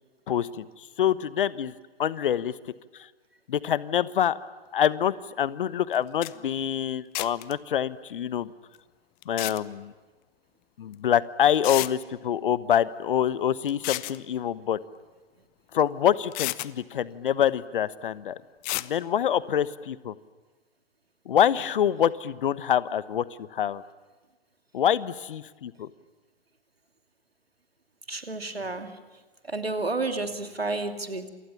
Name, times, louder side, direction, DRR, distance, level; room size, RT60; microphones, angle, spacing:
voice 1, 0.3-0.7 1.0-1.7 2.0-2.5 2.9-3.1 3.5-4.4 4.7-8.5 9.3-9.9 10.8-14.8 15.7-18.4 18.8-20.1 21.3-23.2 23.5-23.8 24.7-25.9, left 9 dB, 60° left, 16 dB, 1.2 m, -25 dB
sound 1, 5.9-6.0 6.2-6.3 7.1-7.5 9.2-9.6 10.9-11.0 11.6-11.9 13.7-14.2 15.7-15.8 16.3-16.7 18.6-18.9, left 23 dB, 30° left, 0.8 m, -31 dB
voice 2, 28.1-29.0 29.5-31.3, right 3 dB, 85° right, 7 dB, 2.8 m, -31 dB
28.5 x 28.0 x 7.2 m, 1.3 s
figure-of-eight pair, 105°, 29 cm